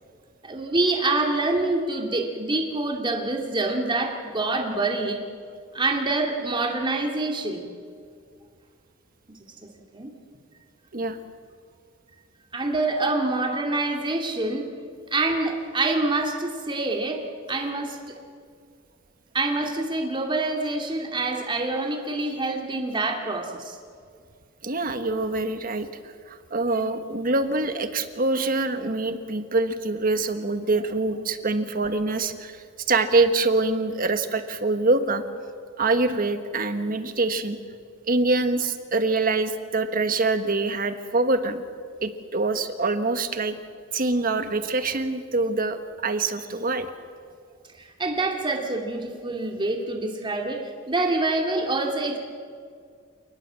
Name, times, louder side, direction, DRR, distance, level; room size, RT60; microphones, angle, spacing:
voice 1, 0.4-5.2 5.7-7.7 9.9-10.1 12.5-14.7 15.1-17.2 17.5-18.0 19.3-23.8 47.8-52.2, right 2 dB, 25° right, 1 dB, 2.5 m, -26 dB
voice 2, 24.6-35.2 35.8-37.6 38.1-41.6 42.0-43.5 43.9-46.9, right 3 dB, 45° right, 9 dB, 1.4 m, -25 dB
28.0 x 19.5 x 7.6 m, 2.1 s
head